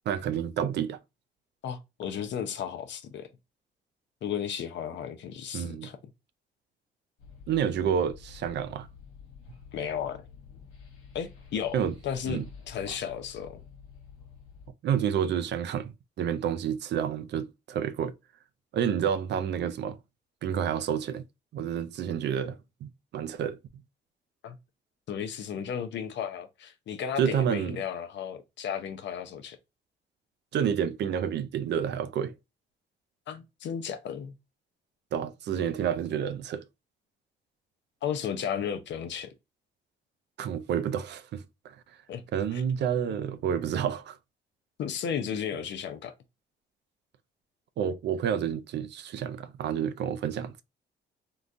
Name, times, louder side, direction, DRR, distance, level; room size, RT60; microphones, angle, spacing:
voice 1, 0.1-1.0 5.5-5.9 7.5-8.9 11.7-11.9 12.3-12.5 14.8-18.1 18.7-20.0 20.4-21.2 21.5-23.6 27.2-27.8 30.5-32.3 35.1-36.6 40.4-41.8 42.3-44.2 47.8-50.6, right 8 dB, 60° right, 0.4 m, -29 dB
voice 2, 1.6-3.3 4.2-6.0 9.7-10.3 11.1-13.6 24.4-24.6 25.1-29.6 33.3-34.4 38.0-39.3 42.1-42.2 42.5-42.6 43.1-43.2 44.8-46.1, left 8 dB, 65° left, 0.6 m, -34 dB
sound 1, 7.2-14.7, left 6 dB, 85° left, 0.9 m, -50 dB
3.7 x 2.2 x 2.5 m
cardioid pair, 90°, 20 cm